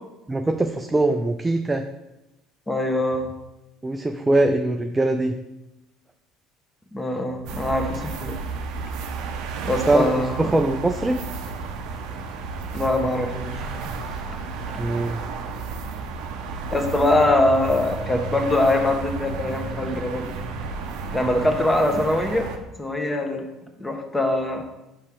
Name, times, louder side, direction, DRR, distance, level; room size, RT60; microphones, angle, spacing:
voice 1, 0.3-1.9 3.8-5.3 9.9-10.1 10.4-11.2 14.8-15.3, right 2 dB, 15° right, 5 dB, 0.4 m, -22 dB
voice 2, 2.7-3.3 6.9-8.4 9.6-10.5 12.7-13.5 14.1-14.4 14.7-14.8 16.7-20.3 20.6-20.7 21.1-22.5 22.8-23.5 23.8-24.6, left 2 dB, 15° left, 4 dB, 1.0 m, -23 dB
sound 1, 7.5-22.6, right 4 dB, 65° right, 0.6 m, -32 dB
5.6 x 4.8 x 3.6 m, 0.97 s
figure-of-eight pair, 60°, 0 cm